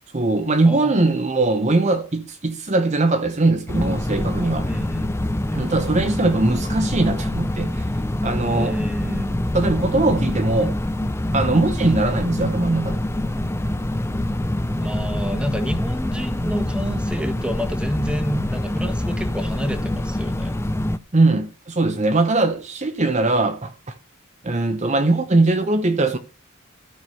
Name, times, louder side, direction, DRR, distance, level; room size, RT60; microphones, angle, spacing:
voice 1, 0.1-4.7 5.5-7.9 8.2-8.8 9.5-10.8 11.3-13.0 21.1-23.9 24.4-26.2, right 2 dB, 30° right, 0.8 m, -20 dB
sound 1, 3.7-21.0, left 1 dB, 10° left, 0.5 m, -25 dB
voice 2, 4.6-5.7 8.5-9.6 14.8-20.6, equal, 5° right, 1.3 m, -29 dB
12.5 x 6.0 x 7.6 m
head